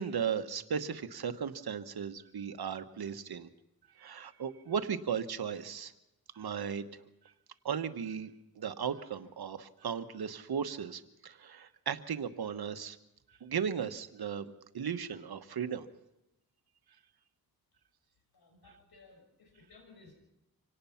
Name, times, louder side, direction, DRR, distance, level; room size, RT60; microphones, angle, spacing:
voice 1, 0.0-3.5 4.0-5.9 6.3-6.8 7.6-13.0 13.4-15.9, right 7 dB, 90° right, 10 dB, 1.2 m, -36 dB
voice 2, 18.3-20.1, left 3 dB, 90° left, 1 dB, 6.2 m, -58 dB
26.0 x 18.0 x 5.8 m, 0.90 s
wide cardioid pair, 80°, 36 cm